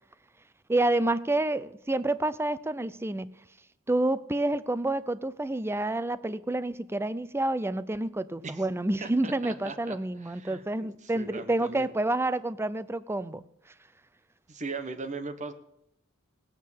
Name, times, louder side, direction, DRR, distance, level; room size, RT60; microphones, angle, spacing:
voice 1, 0.7-3.3 3.9-13.4, right 2 dB, 10° right, 0.5 m, -28 dB
voice 2, 9.0-11.9 14.5-15.5, right 3 dB, 35° right, 1.3 m, -39 dB
18.0 x 8.5 x 7.4 m
head